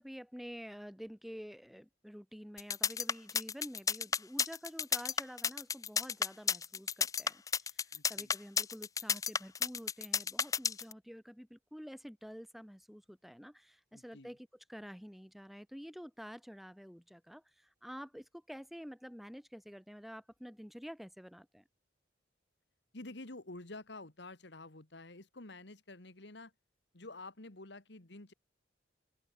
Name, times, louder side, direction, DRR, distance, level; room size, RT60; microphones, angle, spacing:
voice 1, 0.0-21.6, equal, ahead, 4.9 m, -49 dB
sound 1, 2.6-10.9, left 6 dB, 20° left, 0.3 m, -32 dB
voice 2, 7.9-8.3 13.9-14.3 22.9-26.5 26.9-28.3, left 2 dB, 65° left, 2.1 m, -49 dB
head